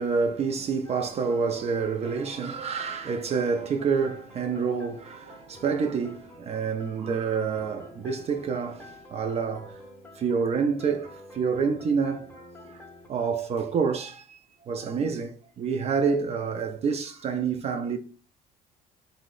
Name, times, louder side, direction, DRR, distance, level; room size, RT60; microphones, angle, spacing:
voice 1, 0.0-9.8 10.2-12.3 12.6-12.8 13.1-18.0, right 5 dB, 40° right, 0.4 m, -28 dB
sound 1, 0.8-13.1, left 1 dB, 15° left, 0.6 m, -48 dB
2.8 x 2.1 x 3.7 m
cardioid pair, 90°, 16 cm